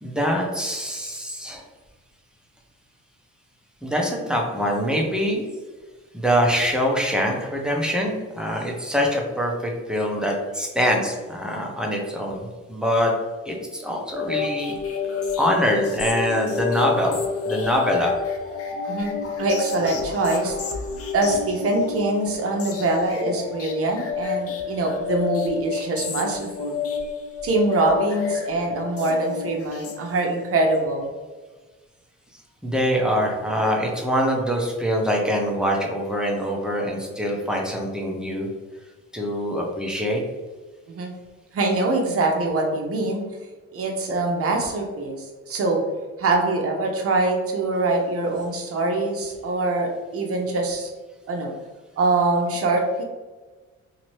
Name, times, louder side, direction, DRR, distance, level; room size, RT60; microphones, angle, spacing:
voice 1, 0.0-1.6 3.8-5.5 6.1-13.1 13.4-14.7 15.4-18.2 32.6-38.5 39.1-40.2, equal, 5° right, -1 dB, 0.7 m, -24 dB
sound 1, 14.1-30.5, left 5 dB, 50° left, 0.6 m, -30 dB
voice 2, 18.9-20.6 21.1-26.8 27.4-31.1 40.9-41.1 41.5-43.2 43.7-45.8 46.2-50.9 51.3-51.5 52.0-53.0, right 2 dB, 50° right, 1 dB, 0.8 m, -24 dB
2.8 x 2.7 x 3.1 m, 1.3 s
cardioid pair, 90°, 30 cm